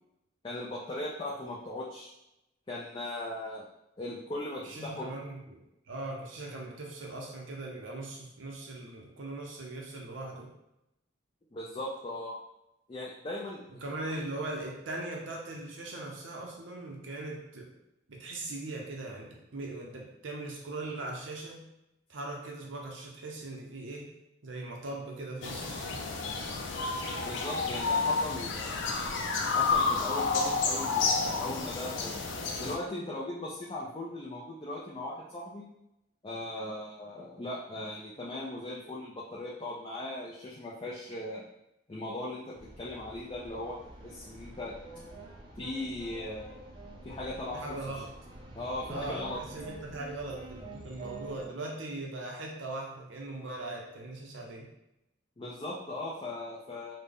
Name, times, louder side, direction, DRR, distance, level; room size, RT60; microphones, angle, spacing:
voice 1, 0.4-2.1 2.7-3.6 4.0-5.1 11.5-12.4 12.9-13.6 14.1-14.2 27.2-28.8 29.5-32.2 32.6-35.7 36.2-41.4 41.9-44.7 45.6-46.6 47.0-47.6 48.6-49.4 55.4-57.0, left 1 dB, 25° left, -5 dB, 0.4 m, -38 dB
voice 2, 4.6-10.5 13.8-17.7 18.1-21.6 22.1-24.1 24.4-26.0 47.5-48.1 48.9-54.7, right 2 dB, 85° right, -1 dB, 0.7 m, -40 dB
sound 1, 25.4-32.8, left 4 dB, 80° left, 0.5 m, -30 dB
sound 2, 42.5-51.5, right 2 dB, 25° right, 0.5 m, -47 dB
3.8 x 2.2 x 3.4 m, 0.86 s
head